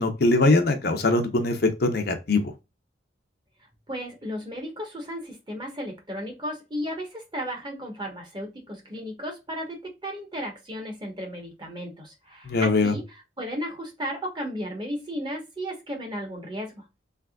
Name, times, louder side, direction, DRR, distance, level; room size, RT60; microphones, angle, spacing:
voice 1, 0.0-2.5 12.5-12.9, left 2 dB, 50° left, 0.7 m, -22 dB
voice 2, 3.9-16.8, equal, 25° right, 1.1 m, -34 dB
3.4 x 3.2 x 2.3 m
head